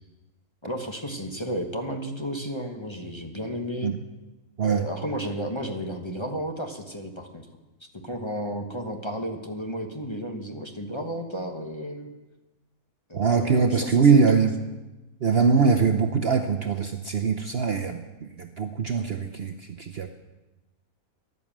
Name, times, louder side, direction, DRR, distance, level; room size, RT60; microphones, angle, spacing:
voice 1, 0.6-3.9 4.6-7.5 7.8-12.1 13.1-14.2, equal, 20° left, 3 dB, 1.2 m, -33 dB
voice 2, 13.1-14.6 15.2-20.1, right 5 dB, 50° right, 5 dB, 0.9 m, -22 dB
14.5 x 11.0 x 7.3 m, 1.1 s
omnidirectional pair, 1.6 m